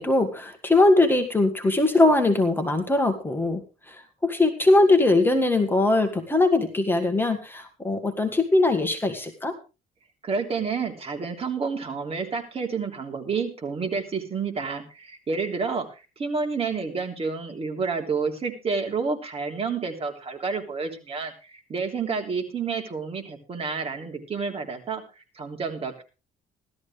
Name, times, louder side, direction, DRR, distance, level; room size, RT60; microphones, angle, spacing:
voice 1, 0.0-9.6, left 2 dB, 10° left, 5 dB, 1.8 m, -21 dB
voice 2, 10.2-26.0, right 5 dB, 35° right, 4 dB, 3.2 m, -29 dB
16.0 x 13.0 x 3.3 m, 0.30 s
cardioid pair, 110°, 17 cm